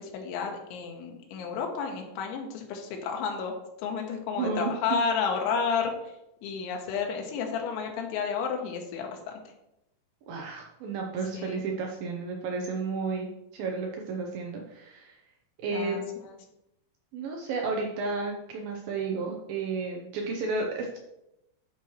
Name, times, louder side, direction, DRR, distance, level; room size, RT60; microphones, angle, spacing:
voice 1, 0.0-5.9 6.4-9.3 11.3-11.6 15.7-16.3, left 6 dB, 85° left, 2 dB, 3.5 m, -31 dB
voice 2, 4.4-4.7 10.3-15.2 15.6-16.0 17.1-21.0, right 4 dB, 80° right, 1 dB, 2.1 m, -32 dB
12.5 x 6.1 x 3.2 m, 0.88 s
omnidirectional pair, 5.2 m